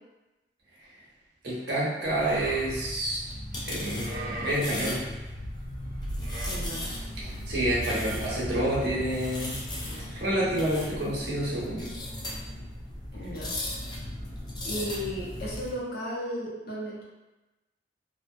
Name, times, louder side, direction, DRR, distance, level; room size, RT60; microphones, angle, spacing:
voice 1, 1.4-3.2 3.6-5.0 7.2-9.5 9.9-11.9, right 1 dB, 70° right, -7 dB, 0.8 m, -28 dB
sound 1, 2.0-15.7, left 1 dB, 25° left, 0.3 m, -38 dB
Livestock farm animals working animals, 2.2-10.0, right 1 dB, 50° right, 0.3 m, -39 dB
sound 2, 3.3-15.7, right 1 dB, 85° left, 1.0 m, -45 dB
voice 2, 6.5-6.9 13.1-13.5 14.6-17.0, equal, 60° left, -5 dB, 0.6 m, -35 dB
2.5 x 2.2 x 2.2 m, 1.1 s
head